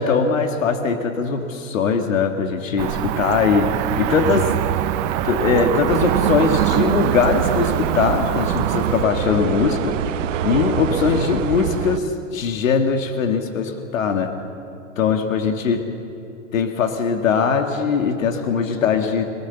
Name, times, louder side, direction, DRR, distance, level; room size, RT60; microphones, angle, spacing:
voice 1, 0.0-4.5 5.2-10.0 10.4-14.3 15.0-15.9 16.5-19.2, left 5 dB, 85° left, 5 dB, 2.0 m, -21 dB
Cricket / Motor vehicle (road), 2.8-9.0, right 13 dB, 40° right, 1.0 m, -23 dB
sound 1, 5.9-12.0, right 10 dB, 70° right, 1.2 m, -25 dB
26.5 x 19.5 x 7.1 m, 2.9 s
hypercardioid pair, 130°, 39 cm